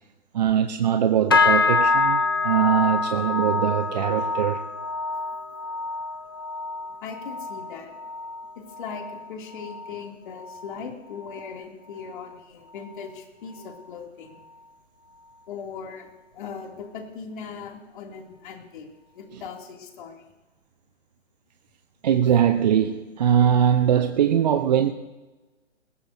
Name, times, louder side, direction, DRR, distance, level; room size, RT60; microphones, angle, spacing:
voice 1, 0.3-4.6 19.3-19.4 22.0-24.9, right 9 dB, 35° right, 9 dB, 0.7 m, -21 dB
sound 1, 1.3-10.9 11.2-11.6 12.0-12.3 12.9-13.0, left 4 dB, 20° left, 0.4 m, -26 dB
voice 2, 7.0-8.0 8.5-14.4 15.5-18.9 19.1-20.2, left 6 dB, 40° left, 2 dB, 2.7 m, -39 dB
20.5 x 17.0 x 2.7 m, 1.1 s
figure-of-eight pair, 135°, 37 cm